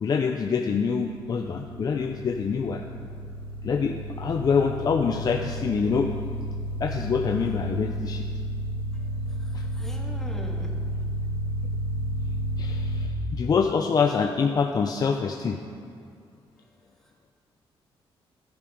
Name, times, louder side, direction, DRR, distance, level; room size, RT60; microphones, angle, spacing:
voice 1, 0.0-2.8 3.6-6.1 6.8-8.2 9.5-9.6 12.6-15.6, left 5 dB, 40° left, 4 dB, 0.6 m, -25 dB
sound 1, 1.0-13.1, equal, 65° right, 2.4 m, -32 dB
voice 2, 7.4-7.7 9.6-10.7, equal, 5° left, -1 dB, 1.9 m, -41 dB
13.5 x 10.5 x 5.2 m, 2.3 s
cardioid pair, 125°, 10 cm